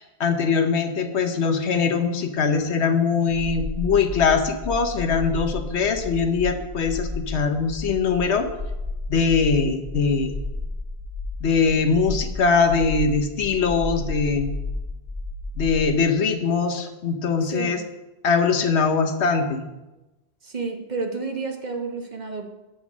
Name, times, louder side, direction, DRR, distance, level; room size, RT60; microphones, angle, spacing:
voice 1, 0.0-8.5 9.1-10.3 11.4-14.5 15.6-17.8 18.2-19.6, left 5 dB, 85° left, 7 dB, 1.2 m, -22 dB
sound 1, 3.3-15.9, left 2 dB, 15° right, 2.2 m, -32 dB
voice 2, 20.4-22.5, right 4 dB, 45° right, 4 dB, 1.1 m, -30 dB
7.6 x 7.1 x 6.0 m, 1.0 s
omnidirectional pair, 1.1 m